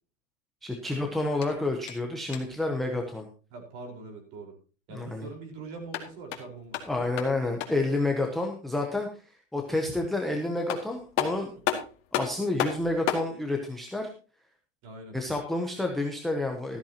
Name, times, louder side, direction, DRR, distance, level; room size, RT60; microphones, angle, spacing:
voice 1, 0.6-3.3 4.9-5.3 6.8-11.5 12.1-14.1 15.1-16.8, left 2 dB, ahead, 1 dB, 0.7 m, -29 dB
sound 1, 1.4-2.7 5.7-7.9 10.2-10.3 10.7-13.3, left 10 dB, 30° left, 2.1 m, -33 dB
voice 2, 3.5-4.5 4.9-7.7 14.8-15.2, right 3 dB, 35° right, 3 dB, 4.4 m, -43 dB
13.5 x 13.5 x 2.9 m, 0.36 s
supercardioid pair, 170°, 38 cm